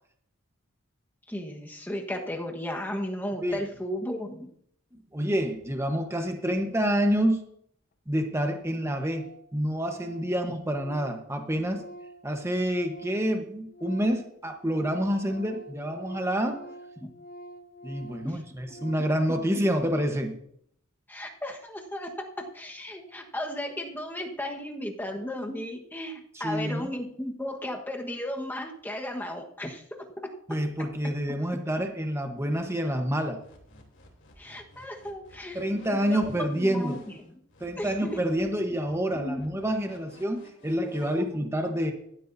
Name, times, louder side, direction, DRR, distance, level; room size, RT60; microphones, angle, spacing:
voice 1, 1.3-4.5 17.0-17.1 18.2-18.4 21.1-22.1 22.4-29.8 34.4-37.0 37.8-38.2 39.1-39.4, left 1 dB, 10° left, 2 dB, 1.3 m, -35 dB
voice 2, 5.1-7.4 8.1-11.8 12.2-16.7 17.8-20.4 26.3-26.9 30.5-33.4 35.5-37.0 37.6-41.9, equal, 15° right, 5 dB, 1.1 m, -28 dB
Organ, 8.1-8.2 8.4-8.5 8.7-8.8 9.1-9.5 9.8-13.4 13.6-19.3, right 1 dB, 45° left, 0.7 m, -46 dB
sound 1, 33.4-41.2, left 2 dB, 60° left, 3.3 m, -54 dB
17.0 x 12.5 x 2.7 m, 0.69 s
head